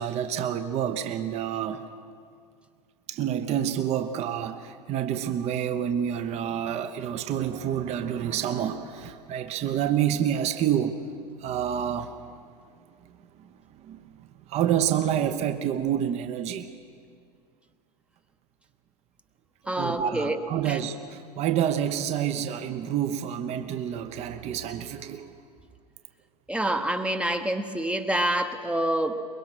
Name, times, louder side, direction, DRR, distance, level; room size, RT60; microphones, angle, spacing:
voice 1, 0.0-1.9 3.1-11.1 11.4-12.2 13.1-16.7 19.6-25.3, right 9 dB, 30° right, 8 dB, 1.0 m, -28 dB
voice 2, 19.7-20.8 26.5-29.3, right 1 dB, 5° right, 7 dB, 1.0 m, -27 dB
23.0 x 21.0 x 6.2 m, 2.2 s
hypercardioid pair, 105°, 21 cm